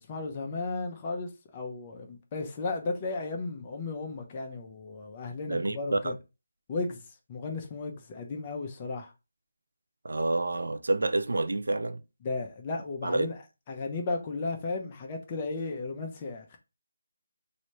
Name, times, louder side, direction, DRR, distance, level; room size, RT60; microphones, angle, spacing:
voice 1, 0.0-6.1 6.7-7.0 7.3-9.1 12.2-13.3 13.7-16.6, left 3 dB, 25° left, 0.7 m, -34 dB
voice 2, 5.5-6.2 10.0-12.0 13.0-13.3, right 2 dB, 75° right, 0.5 m, -28 dB
3.1 x 2.7 x 3.0 m
figure-of-eight pair, 160°, 0 cm